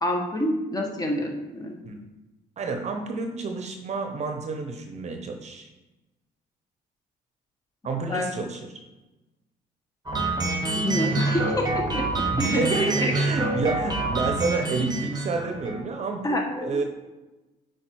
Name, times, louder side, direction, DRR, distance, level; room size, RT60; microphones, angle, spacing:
voice 1, 0.0-1.8 8.0-8.3 10.7-13.1 13.6-13.7 16.2-16.8, left 1 dB, 20° left, 1 dB, 1.6 m, -28 dB
voice 2, 2.6-5.7 7.8-8.7 12.3-16.8, right 4 dB, 40° right, 5 dB, 0.9 m, -29 dB
sound 1, 10.1-15.8, right 2 dB, 25° right, 1.2 m, -27 dB
8.5 x 4.8 x 4.7 m, 1.1 s
cardioid pair, 110°, 17 cm